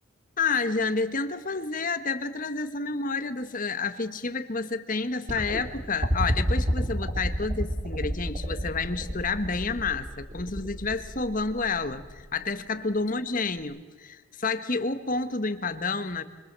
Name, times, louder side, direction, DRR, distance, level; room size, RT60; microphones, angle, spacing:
voice 1, 0.4-16.2, left 4 dB, 40° left, 10 dB, 1.4 m, -29 dB
sound 1, 5.3-12.4 13.6-13.7, equal, 35° right, 2.7 m, -30 dB
26.0 x 24.0 x 7.6 m, 1.3 s
head